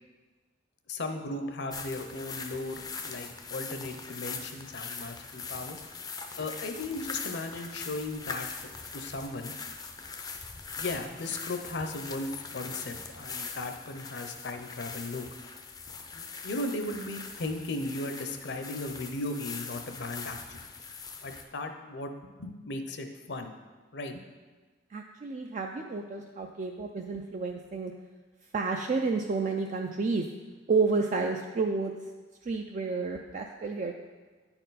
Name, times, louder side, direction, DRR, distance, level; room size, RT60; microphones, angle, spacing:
voice 1, 0.9-5.8 6.4-8.5 8.9-9.5 10.8-15.3 16.1-20.6 21.2-22.1 22.4-23.5 23.9-24.2, left 2 dB, 60° left, 6 dB, 0.6 m, -36 dB
sound 1, 1.7-21.4, left 5 dB, 20° left, 0.4 m, -41 dB
voice 2, 24.9-27.9 28.5-30.2 30.7-31.9 32.4-34.0, right 4 dB, 40° right, 2 dB, 0.4 m, -30 dB
9.8 x 4.4 x 4.0 m, 1.4 s
head